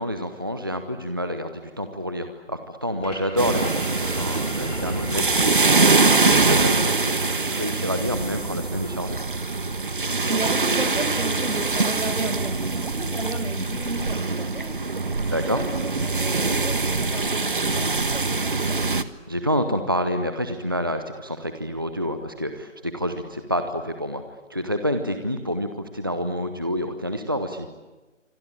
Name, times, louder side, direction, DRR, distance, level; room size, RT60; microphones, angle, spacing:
voice 1, 0.0-9.2 15.3-15.6 19.3-24.2 24.5-27.7, equal, 15° right, 8 dB, 0.9 m, -28 dB
sound 1, 3.0-12.4, left 1 dB, 70° left, 5.1 m, -41 dB
sound 2, 3.4-19.0, right 3 dB, 40° right, 1.4 m, -23 dB
voice 2, 10.3-19.1, right 2 dB, 70° right, 8 dB, 6.9 m, -34 dB
26.5 x 25.5 x 8.7 m, 1.2 s
figure-of-eight pair, 170°, 38 cm